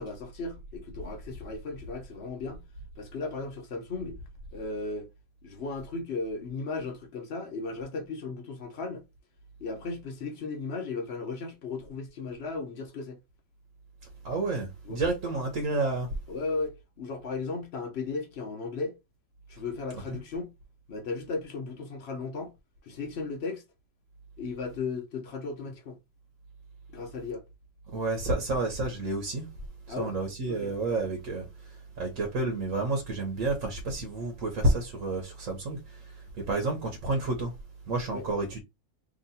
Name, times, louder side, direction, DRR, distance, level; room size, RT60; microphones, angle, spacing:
voice 1, 0.0-2.6 3.0-4.2 4.5-5.1 5.4-9.0 9.6-13.2 14.8-15.0 16.3-18.9 19.5-20.5 20.9-22.5 22.8-23.6 24.4-26.0 26.9-27.4 29.9-30.2 30.5-30.7 38.1-38.2, left 3 dB, 60° left, 1.0 m, -36 dB
voice 2, 14.2-16.1 19.9-20.2 27.9-29.5 29.9-31.5 32.0-36.0 36.4-37.5 37.9-38.6, right 2 dB, 85° right, 1.3 m, -30 dB
2.9 x 2.9 x 4.1 m
omnidirectional pair, 1.3 m